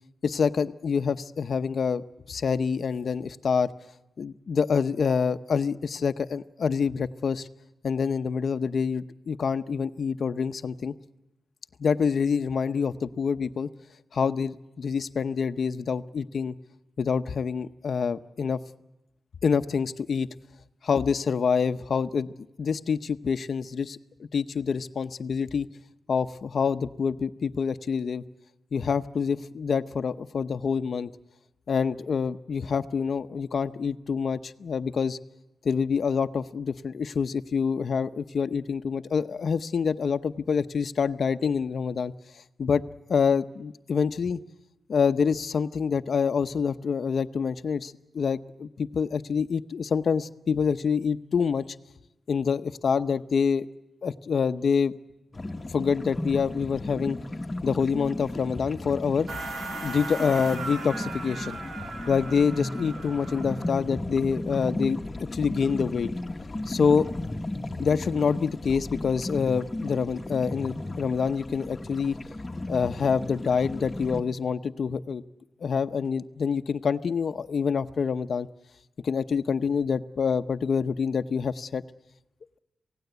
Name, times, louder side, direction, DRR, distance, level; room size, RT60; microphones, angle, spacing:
voice 1, 0.2-3.7 4.2-7.5 7.8-10.9 11.8-13.7 14.1-16.5 17.0-18.6 19.4-20.3 20.8-22.3 22.6-25.7 26.1-28.2 28.7-31.1 31.7-35.2 35.6-42.1 42.6-42.8 43.1-44.4 44.9-51.7 52.3-53.7 54.0-54.9 55.7-57.2 57.6-59.3 59.8-61.6 62.1-65.0 65.3-66.1 66.7-67.1 67.8-72.2 72.7-75.2 75.6-78.5 79.0-81.8, left 6 dB, 60° left, 11 dB, 0.7 m, -26 dB
sound 1, 55.3-74.2, left 2 dB, 20° left, 1.2 m, -35 dB
sound 2, 59.3-63.8, right 3 dB, 85° right, 2.3 m, -37 dB
27.0 x 17.0 x 8.0 m, 0.96 s
wide cardioid pair, 140°, 0 cm